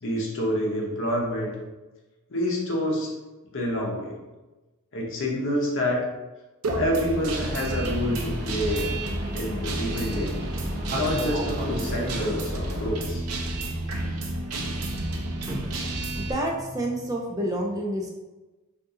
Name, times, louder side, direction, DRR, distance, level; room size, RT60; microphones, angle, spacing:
voice 1, 0.0-1.6 2.3-3.1 3.5-4.1 4.9-6.1 6.8-8.9 9.3-10.3 10.9-13.2, equal, 60° left, -1 dB, 0.8 m, -27 dB
Guitar, 6.6-16.3, right 2 dB, 90° right, 0.6 m, -31 dB
sound 1, 7.3-12.9, equal, 40° right, 0.7 m, -34 dB
voice 2, 15.5-18.2, right 1 dB, 15° right, -1 dB, 0.3 m, -30 dB
2.7 x 2.5 x 3.6 m, 1.1 s
head